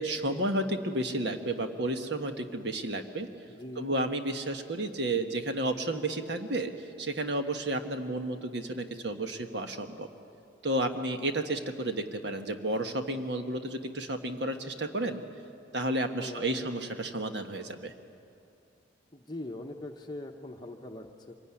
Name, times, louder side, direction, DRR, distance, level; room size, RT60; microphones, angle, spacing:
voice 1, 0.0-3.3 3.8-10.1 10.6-15.2 15.7-17.9, right 1 dB, 60° right, 6 dB, 1.4 m, -32 dB
voice 2, 3.5-3.9 16.2-16.7 19.1-21.3, left 1 dB, 20° left, 3 dB, 0.9 m, -42 dB
24.5 x 16.5 x 9.8 m, 2.5 s
head